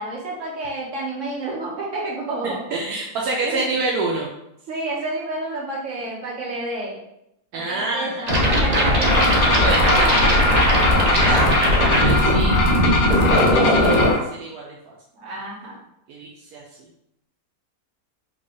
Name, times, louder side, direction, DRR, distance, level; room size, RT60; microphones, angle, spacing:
voice 1, 0.0-2.6 3.4-3.7 4.7-7.0 7.5-9.3 9.9-10.9 15.1-15.8, right 2 dB, 55° right, -4 dB, 1.5 m, -30 dB
voice 2, 2.4-4.3 7.5-8.3 9.6-10.4 11.1-12.6 13.2-14.9 16.1-16.9, right 3 dB, 80° right, -2 dB, 1.1 m, -28 dB
sound 1, 8.3-14.1, equal, 35° right, 0.7 m, -18 dB
sound 2, 9.0-14.2, left 2 dB, 70° left, 1.1 m, -22 dB
4.7 x 2.3 x 3.8 m, 0.80 s
omnidirectional pair, 1.6 m